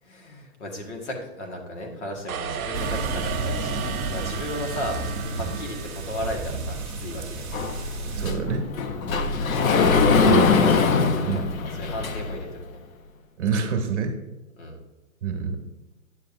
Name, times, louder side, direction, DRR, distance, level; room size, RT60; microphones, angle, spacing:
voice 1, 0.0-7.5 9.4-9.9 10.3-12.8 14.6-14.8, left 1 dB, 55° left, 1 dB, 1.8 m, -35 dB
sound 1, 2.3-6.5, right 8 dB, 70° right, 1.0 m, -34 dB
sound 2, 2.7-8.3, right 2 dB, ahead, 1.0 m, -32 dB
Sliding door, 7.5-12.5, left 5 dB, 70° left, 0.9 m, -22 dB
voice 2, 8.1-8.7 10.2-10.6 11.2-11.5 13.4-14.2 15.2-15.6, right 5 dB, 50° right, 3 dB, 1.3 m, -27 dB
9.1 x 6.9 x 2.6 m, 1.1 s
hypercardioid pair, 170°, 43 cm